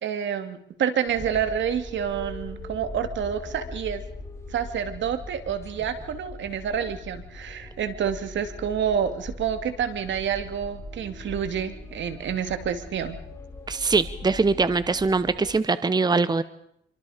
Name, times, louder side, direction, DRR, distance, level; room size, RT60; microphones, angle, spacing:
voice 1, 0.0-4.0 4.5-13.2, right 8 dB, 70° right, 9 dB, 2.7 m, -28 dB
sound 1, 1.1-15.5, left 2 dB, 15° left, 4.9 m, -40 dB
voice 2, 13.7-16.4, right 4 dB, 20° right, 14 dB, 1.0 m, -22 dB
27.5 x 24.0 x 5.2 m, 0.70 s
cardioid pair, 90°, 20 cm